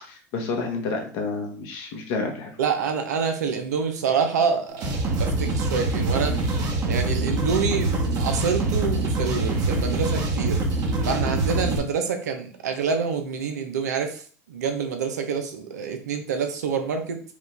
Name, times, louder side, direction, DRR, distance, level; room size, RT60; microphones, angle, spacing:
voice 1, 0.0-2.5, left 3 dB, 65° left, 3 dB, 1.3 m, -29 dB
voice 2, 2.6-4.9 5.2-6.3 6.9-10.6 11.1-14.2 14.5-17.2, right 6 dB, 90° right, 6 dB, 0.8 m, -27 dB
sound 1, 4.7-11.8, right 2 dB, 45° right, 1.2 m, -24 dB
5.1 x 2.5 x 3.3 m, 0.41 s
hypercardioid pair, 85°, 9 cm